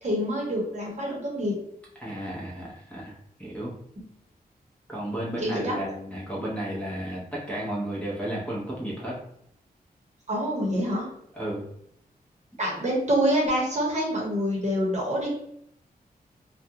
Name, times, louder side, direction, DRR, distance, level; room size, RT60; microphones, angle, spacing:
voice 1, 0.0-1.6 4.0-4.1 5.4-5.8 10.3-11.1 12.6-15.3, equal, 45° right, -4 dB, 1.0 m, -26 dB
voice 2, 2.0-3.1 3.4-3.7 4.9-9.2 11.3-11.6, right 1 dB, 10° left, -6 dB, 0.8 m, -33 dB
2.4 x 2.2 x 2.8 m, 0.73 s
wide cardioid pair, 125°, 16 cm